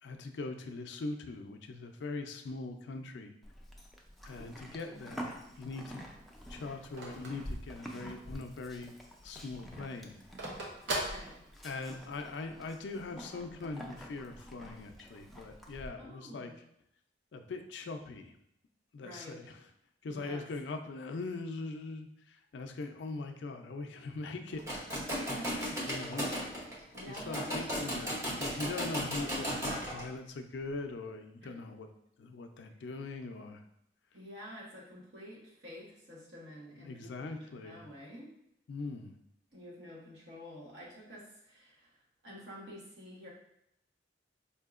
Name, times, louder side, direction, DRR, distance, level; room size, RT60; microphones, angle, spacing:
voice 1, 0.0-3.3 4.3-6.0 6.5-9.0 9.2-10.2 11.6-16.5 17.3-18.3 18.9-19.6 20.0-24.8 25.2-26.3 27.1-31.9 32.2-33.6 36.8-37.9 38.7-39.1, left 3 dB, 75° left, 6 dB, 0.4 m, -41 dB
Livestock farm animals working animals, 3.4-15.9, equal, ahead, 0.4 m, -48 dB
voice 2, 4.6-5.1 10.9-11.4 16.0-16.6 19.0-19.4 20.1-20.4 25.3-25.7 26.9-27.6 34.1-38.3 39.5-42.0 42.2-43.3, equal, 70° right, -4 dB, 1.2 m, -49 dB
Telephone, 4.9-8.4 8.8-8.9 9.1-12.0, right 1 dB, 85° right, 0.8 m, -40 dB
sound 1, 24.5-30.1, equal, 15° right, 0.7 m, -36 dB
4.3 x 2.7 x 2.4 m, 0.77 s
head